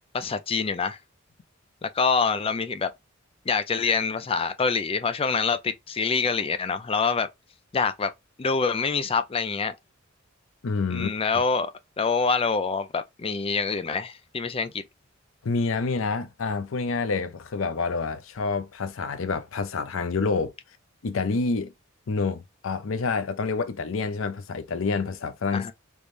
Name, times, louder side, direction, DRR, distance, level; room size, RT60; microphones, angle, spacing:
voice 1, 0.1-1.0 1.8-2.9 3.5-7.3 7.7-8.1 8.4-9.7 10.9-11.7 12.0-14.8 25.5-25.7, left 5 dB, 30° left, 0.4 m, -26 dB
voice 2, 10.6-11.1 15.4-20.5 21.0-21.7 22.1-25.7, left 4 dB, 80° left, 0.5 m, -28 dB
3.5 x 3.1 x 2.5 m
head